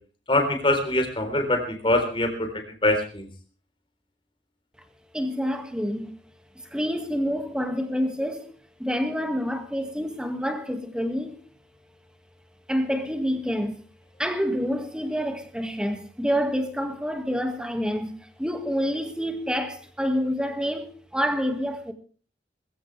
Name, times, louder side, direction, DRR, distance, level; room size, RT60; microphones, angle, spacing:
voice 1, 0.3-2.5 2.8-3.3, left 1 dB, 30° left, 3.8 m, -23 dB
voice 2, 5.1-6.1 6.7-8.5 8.8-11.4 12.7-13.8 14.2-18.1 18.4-21.9, equal, 5° right, 1.8 m, -27 dB
21.5 x 15.0 x 3.3 m
head